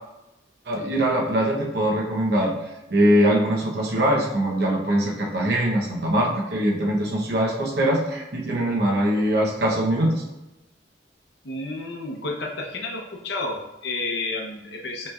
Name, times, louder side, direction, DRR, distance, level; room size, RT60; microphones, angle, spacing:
voice 1, 0.7-2.5 2.9-10.2, right 1 dB, 60° right, -2 dB, 0.8 m, -22 dB
voice 2, 11.4-15.1, left 2 dB, 65° left, 0 dB, 0.6 m, -31 dB
5.6 x 3.1 x 2.3 m, 0.97 s
head